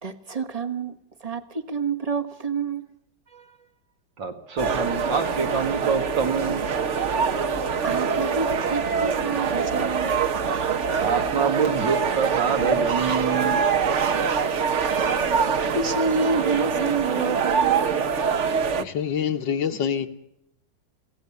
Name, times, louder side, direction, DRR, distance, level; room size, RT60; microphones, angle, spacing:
voice 1, 0.0-2.9 3.3-3.6 7.6-10.2 15.7-18.0, right 4 dB, 25° right, 1.2 m, -29 dB
voice 2, 4.2-6.7 11.0-13.9, right 6 dB, 80° right, 3.0 m, -26 dB
sound 1, 4.6-18.8, right 6 dB, 45° right, 1.2 m, -24 dB
voice 3, 18.7-20.1, left 8 dB, 75° left, 2.1 m, -26 dB
22.5 x 17.0 x 7.1 m
omnidirectional pair, 2.0 m